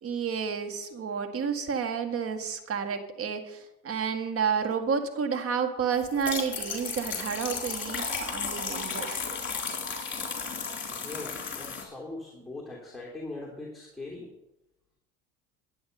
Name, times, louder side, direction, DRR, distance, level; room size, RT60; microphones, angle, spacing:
voice 1, 0.0-9.2, right 6 dB, 40° right, 6 dB, 1.9 m, -30 dB
sound 1, 6.0-11.8, left 5 dB, 35° left, 3.8 m, -34 dB
voice 2, 10.9-14.3, left 2 dB, ahead, -4 dB, 3.2 m, -41 dB
11.0 x 9.5 x 5.4 m, 0.86 s
hypercardioid pair, 80°, 35 cm